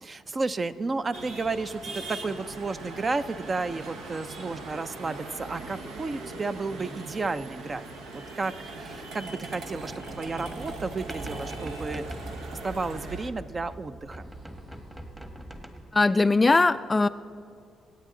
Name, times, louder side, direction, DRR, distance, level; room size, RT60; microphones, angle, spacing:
voice 1, 0.0-7.8 8.1-12.0 12.6-14.3, right 3 dB, 30° right, 12 dB, 0.5 m, -32 dB
sound 1, 1.1-13.3, right 2 dB, 90° right, 1.4 m, -40 dB
sound 2, 9.1-13.3 13.7-16.1, equal, 15° right, 1.4 m, -44 dB
sound 3, 10.1-15.6, right 1 dB, 60° right, 3.4 m, -47 dB
voice 2, 15.9-17.1, left 3 dB, 20° left, 13 dB, 0.3 m, -20 dB
25.5 x 9.1 x 3.8 m, 2.3 s
cardioid pair, 90°, 0 cm